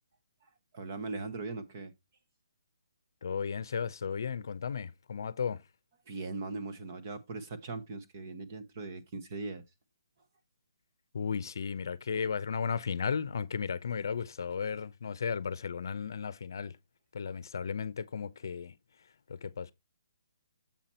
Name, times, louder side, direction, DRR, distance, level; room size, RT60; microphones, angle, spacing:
voice 1, 0.7-1.9 6.1-9.6, right 3 dB, 30° right, 1.0 m, -39 dB
voice 2, 3.2-5.6 11.1-16.7 17.1-18.8 19.3-19.7, left 6 dB, 55° left, 0.7 m, -35 dB
7.3 x 5.9 x 4.2 m
hypercardioid pair, 175°, 2 cm